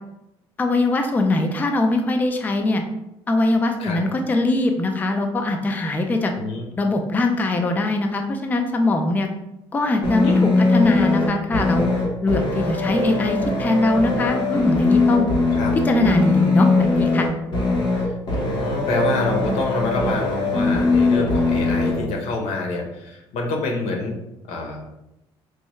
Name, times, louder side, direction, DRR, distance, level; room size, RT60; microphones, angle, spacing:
voice 1, 0.6-2.8 3.3-6.3 6.8-9.3 9.7-11.9 12.2-15.3 15.8-17.3, left 2 dB, 15° left, 4 dB, 0.3 m, -21 dB
sound 1, 10.0-22.0, left 3 dB, 55° left, 1.0 m, -21 dB
voice 2, 18.3-24.1 24.5-24.8, left 3 dB, 85° left, 1 dB, 0.9 m, -26 dB
4.5 x 2.1 x 3.1 m, 0.88 s
cardioid pair, 130°, 10 cm